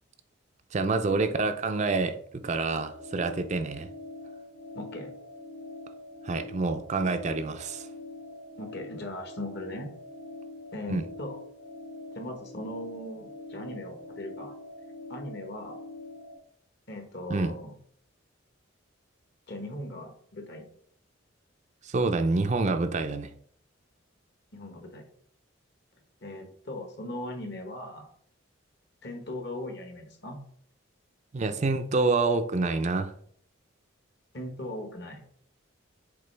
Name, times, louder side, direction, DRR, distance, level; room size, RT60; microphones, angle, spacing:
voice 1, 0.7-3.9 6.2-7.9 10.9-11.0 17.3-17.5 21.8-23.3 31.3-33.1, right 3 dB, 35° right, 8 dB, 0.4 m, -27 dB
sound 1, 2.6-16.4, left 2 dB, 75° left, 1.6 m, -44 dB
voice 2, 4.7-5.1 8.6-9.9 10.7-11.4 12.1-14.5 15.1-15.8 16.9-17.8 19.5-20.7 24.5-25.0 26.2-28.1 29.0-30.4 34.3-35.2, left 1 dB, 55° left, 5 dB, 1.2 m, -39 dB
6.8 x 4.2 x 3.3 m, 0.62 s
head